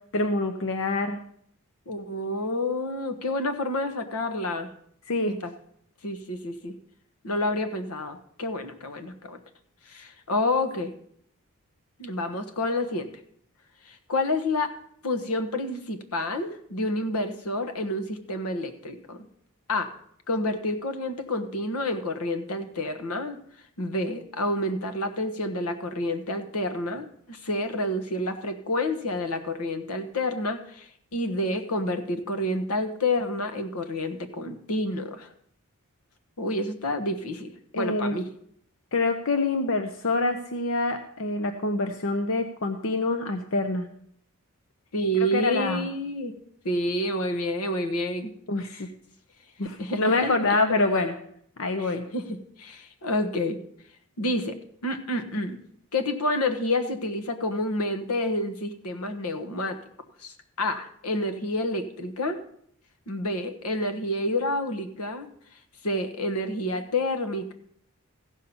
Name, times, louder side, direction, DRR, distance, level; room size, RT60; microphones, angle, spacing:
voice 1, 0.1-1.2 5.1-5.4 37.7-38.1 38.9-43.9 45.3-45.9 48.5-48.9 49.6-51.1 51.6-52.1, left 2 dB, 60° left, 7 dB, 0.8 m, -26 dB
voice 2, 1.9-4.7 5.3-5.5 6.0-6.7 7.2-9.4 9.9-10.9 12.0-13.1 13.8-14.8 15.0-19.2 19.7-19.9 20.3-23.4 23.8-35.3 36.4-38.3 44.9-46.4 46.6-48.3 48.6-48.8 49.8-50.6 51.8-53.6 54.2-55.6 55.9-59.8 60.2-62.4 63.1-65.3 65.8-67.5, left 1 dB, 85° left, 7 dB, 1.2 m, -29 dB
15.0 x 5.6 x 7.0 m, 0.66 s
head